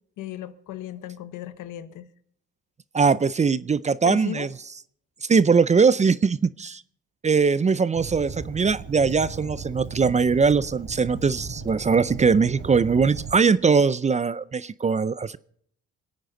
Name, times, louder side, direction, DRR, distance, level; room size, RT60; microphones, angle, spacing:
voice 1, 0.2-2.1 4.0-4.5, left 11 dB, 85° left, 1.0 m, -35 dB
voice 2, 2.9-4.5 5.3-6.8 7.2-15.4, right 5 dB, 25° right, 0.4 m, -21 dB
Fire, 7.9-13.3, right 5 dB, 60° right, 3.6 m, -37 dB
26.5 x 9.1 x 3.9 m
cardioid pair, 90°, 30 cm